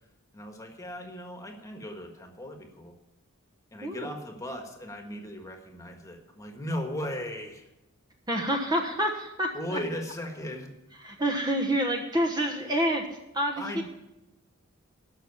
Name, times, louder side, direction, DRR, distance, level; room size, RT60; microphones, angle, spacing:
voice 1, 0.3-2.9 3.7-7.7 9.5-10.7 13.6-13.8, equal, 15° left, 3 dB, 1.5 m, -37 dB
voice 2, 3.8-4.2 8.3-9.8 11.0-13.1 13.3-13.8, right 1 dB, 20° right, 3 dB, 1.0 m, -28 dB
12.5 x 6.0 x 9.5 m, 0.95 s
head